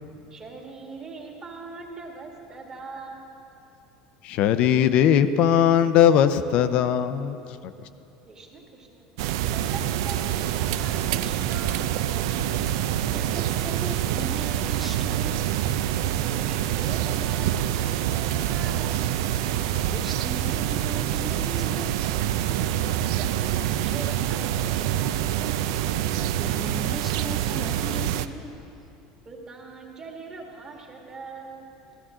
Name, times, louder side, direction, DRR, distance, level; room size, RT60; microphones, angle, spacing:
voice 1, 0.3-3.4 8.3-9.0 9.5-12.3 16.3-19.1 23.2-25.7 29.3-31.7, right 3 dB, 30° right, 0 dB, 2.0 m, -41 dB
voice 2, 4.2-7.4 7.6-7.7, left 9 dB, 60° left, 10 dB, 0.5 m, -19 dB
sound 1, 9.2-28.3, right 11 dB, 80° right, 0.4 m, -26 dB
voice 3, 13.1-15.5 19.9-22.3 26.4-28.6, equal, 5° right, 5 dB, 0.8 m, -38 dB
13.5 x 13.0 x 3.7 m, 2.8 s
supercardioid pair, 115°, 2 cm